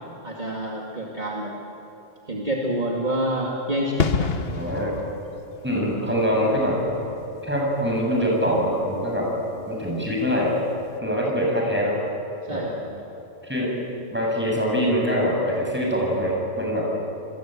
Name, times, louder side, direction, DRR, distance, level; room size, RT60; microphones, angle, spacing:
voice 1, 0.2-1.6 2.3-4.7 12.4-13.0, right 1 dB, 35° right, -1 dB, 2.6 m, -28 dB
sound 1, 4.0-10.5 10.7-10.9, left 5 dB, 50° left, 1.3 m, -31 dB
voice 2, 4.5-4.9 5.6-6.8 7.4-9.3 9.7-10.6 11.0-12.0 12.5-12.7 13.4-13.7 14.1-16.9, equal, 10° right, -2 dB, 7.5 m, -23 dB
28.5 x 21.5 x 9.2 m, 3.0 s
omnidirectional pair, 1.3 m